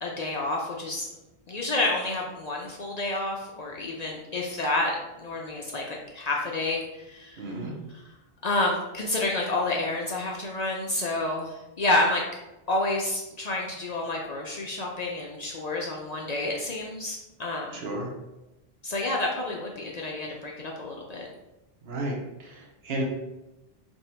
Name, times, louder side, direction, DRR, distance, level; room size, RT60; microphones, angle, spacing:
voice 1, 0.0-1.1 1.5-7.4 7.9-8.0 8.4-12.2 12.7-17.7 18.8-20.5 20.8-21.3, left 2 dB, 55° left, -1 dB, 0.5 m, -29 dB
voice 2, 7.4-7.7 17.7-18.1 21.8-23.0, right 1 dB, 80° right, 0 dB, 1.0 m, -33 dB
2.8 x 2.7 x 4.3 m, 0.98 s
omnidirectional pair, 1.0 m